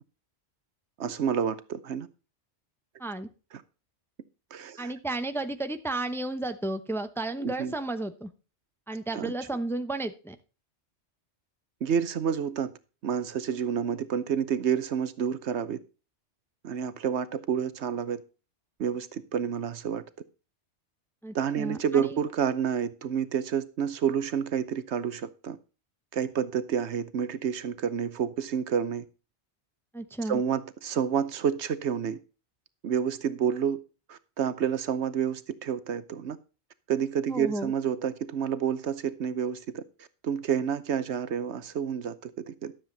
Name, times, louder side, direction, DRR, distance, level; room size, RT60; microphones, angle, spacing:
voice 1, 1.0-2.1 4.5-4.9 7.4-7.7 9.1-9.3 11.8-12.7 13.0-15.8 16.6-18.2 18.8-20.0 21.3-25.6 26.1-29.0 30.3-32.2 32.8-33.8 34.1-36.4 36.9-39.8 40.2-42.7, right 7 dB, 75° right, 1.1 m, -29 dB
voice 2, 4.8-8.3 8.9-10.4 21.2-22.2 29.9-30.4 37.3-37.7, right 2 dB, ahead, 0.8 m, -33 dB
12.5 x 7.4 x 4.0 m
omnidirectional pair, 1.2 m